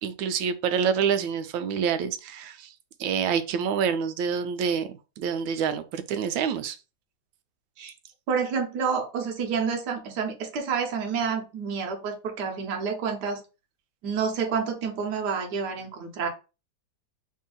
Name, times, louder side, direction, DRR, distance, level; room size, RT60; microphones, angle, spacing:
voice 1, 0.0-2.7 3.0-4.9 5.2-6.8, right 7 dB, 85° right, 1.3 m, -27 dB
voice 2, 8.3-13.4 14.0-16.3, right 6 dB, 65° right, 1.4 m, -29 dB
3.4 x 2.7 x 3.7 m
omnidirectional pair, 2.0 m